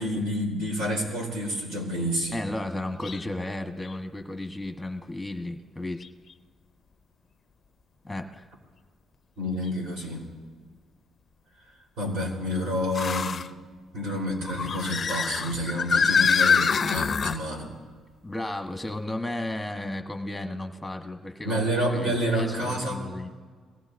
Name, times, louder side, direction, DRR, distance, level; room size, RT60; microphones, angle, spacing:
voice 1, 0.0-2.4 9.4-10.3 12.0-13.4 13.9-17.7 21.4-23.1, equal, 85° right, -1 dB, 3.8 m, -29 dB
voice 2, 2.3-6.0 8.0-8.5 18.2-23.3, left 1 dB, 5° left, 5 dB, 1.1 m, -34 dB
sound 1, 3.0-3.2 3.8-3.9 6.0-6.1 9.6-9.7 12.9-13.5 14.4-17.4, left 6 dB, 40° left, 0.4 m, -25 dB
22.5 x 18.0 x 2.6 m, 1.5 s
cardioid pair, 105°, 0 cm